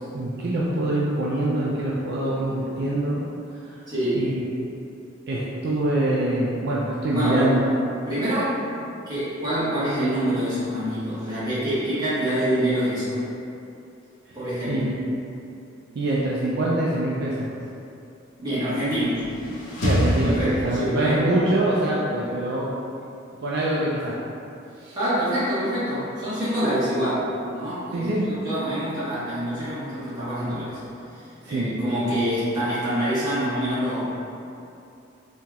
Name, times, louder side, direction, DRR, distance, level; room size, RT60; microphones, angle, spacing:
voice 1, 0.1-3.2 3.5-3.8 4.2-4.4 5.3-7.6 14.7-14.9 15.9-17.5 19.8-20.4 20.6-22.8 23.4-24.2 24.8-25.0 27.9-28.3 31.4-31.7, right 1 dB, 55° right, -6 dB, 0.4 m, -24 dB
voice 2, 3.9-4.2 7.1-7.5 8.1-8.6 9.1-13.2 14.3-14.9 18.4-19.3 20.2-21.2 24.9-30.8 31.1-34.0, equal, 20° right, -13 dB, 1.3 m, -26 dB
sound 1, 19.0-21.2, equal, 85° left, 0.8 m, -26 dB
4.3 x 2.9 x 2.3 m, 2.7 s
head